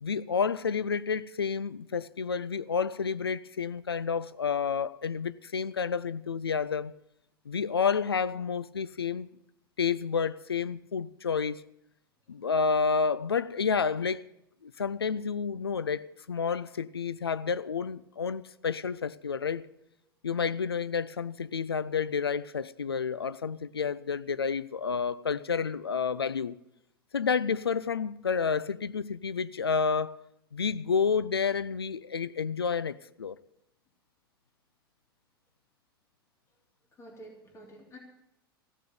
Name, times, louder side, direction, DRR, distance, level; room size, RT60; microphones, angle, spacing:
voice 1, 0.0-6.9 7.5-9.3 9.8-11.6 12.3-14.2 14.6-19.7 20.2-26.6 27.1-30.2 30.5-33.4, left 6 dB, 85° left, 0.4 m, -30 dB
voice 2, 37.0-38.0, right 1 dB, 25° left, 3.5 m, -49 dB
15.5 x 6.9 x 9.3 m
figure-of-eight pair, 85°, 12 cm